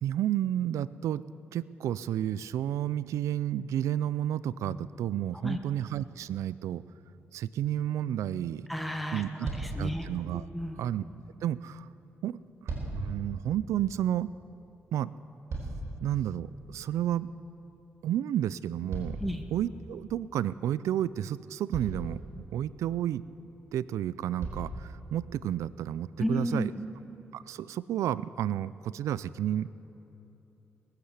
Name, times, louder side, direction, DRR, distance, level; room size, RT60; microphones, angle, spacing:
voice 1, 0.0-1.2 1.5-6.8 7.3-8.7 9.1-9.3 9.8-10.5 10.8-11.0 11.4-11.9 12.2-14.3 14.9-15.1 16.0-17.3 18.0-23.2 23.7-26.7 27.3-29.7, right 11 dB, 90° right, 18 dB, 0.3 m, -31 dB
voice 2, 8.7-10.1 10.5-10.8 19.2-19.4 26.2-26.8, equal, ahead, 4 dB, 1.1 m, -32 dB
sound 1, 9.4-9.9 12.3-13.1 15.0-16.1 18.9-19.9 21.1-21.2 21.7-22.2 23.6-23.7 24.4-24.8 25.6-25.7, right 2 dB, 65° right, 3.9 m, -37 dB
19.0 x 8.1 x 8.2 m, 3.0 s
cardioid pair, 75°, 5 cm